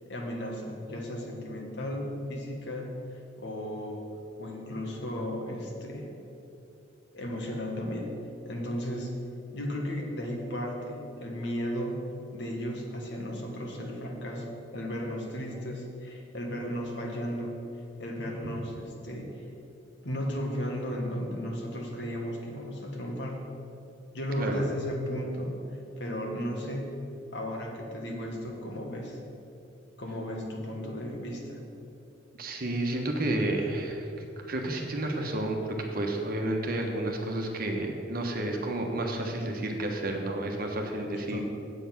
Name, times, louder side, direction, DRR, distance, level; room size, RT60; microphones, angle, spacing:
voice 1, 0.1-4.0 4.4-6.1 7.1-9.2 9.5-12.0 12.3-17.6 18.0-19.4 20.0-23.4 24.1-26.9 27.3-29.2 30.0-31.6 41.1-41.4, equal, 65° left, 0 dB, 1.6 m, -35 dB
voice 2, 32.4-34.1 34.4-35.6 35.9-41.4, right 1 dB, 50° right, 2 dB, 1.3 m, -31 dB
8.2 x 7.9 x 6.0 m, 2.7 s
head